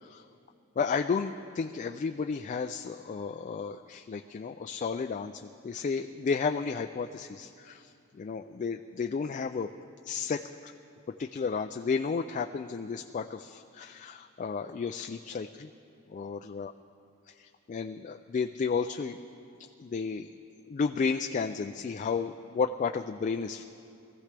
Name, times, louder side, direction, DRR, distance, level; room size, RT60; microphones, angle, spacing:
voice 1, 0.8-9.7 10.0-10.7 11.2-15.7 16.1-16.7 17.3-19.2 19.8-20.3 20.7-23.6, left 5 dB, 35° left, 6 dB, 0.3 m, -32 dB
22.5 x 15.0 x 3.4 m, 2.6 s
head